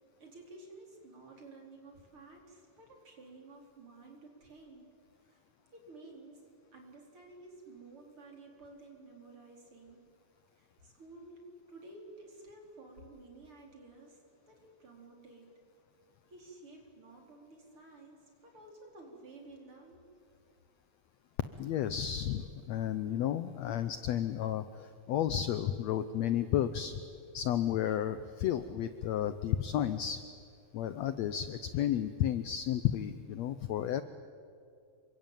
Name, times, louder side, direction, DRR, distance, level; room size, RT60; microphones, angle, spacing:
voice 1, 0.2-4.9 5.2-5.4 5.7-10.0 10.6-14.2 14.5-15.5 16.3-20.0, right 2 dB, 35° right, 1 dB, 4.9 m, -53 dB
voice 2, 21.6-27.0 27.3-30.2 30.7-34.0, left 10 dB, 85° left, 12 dB, 1.5 m, -32 dB
27.5 x 23.5 x 9.1 m, 2.4 s
omnidirectional pair, 4.1 m